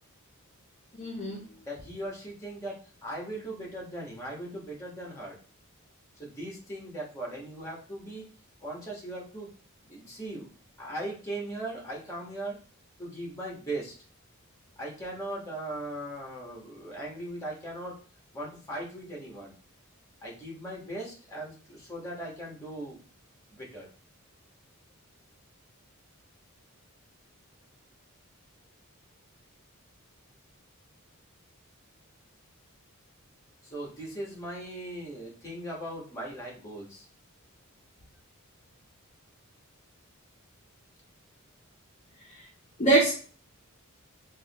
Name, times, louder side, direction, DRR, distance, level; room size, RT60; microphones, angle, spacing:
voice 1, 1.0-1.4 42.8-43.1, right 2 dB, 35° left, -3 dB, 0.6 m, -23 dB
voice 2, 1.6-5.4 6.2-8.3 8.6-9.5 9.9-10.5 10.8-12.6 13.0-13.9 14.8-18.0 18.3-19.5 20.2-23.0 23.5-23.9 33.6-37.1, right 1 dB, 15° left, -3 dB, 1.2 m, -39 dB
4.6 x 2.3 x 2.9 m, 0.39 s
head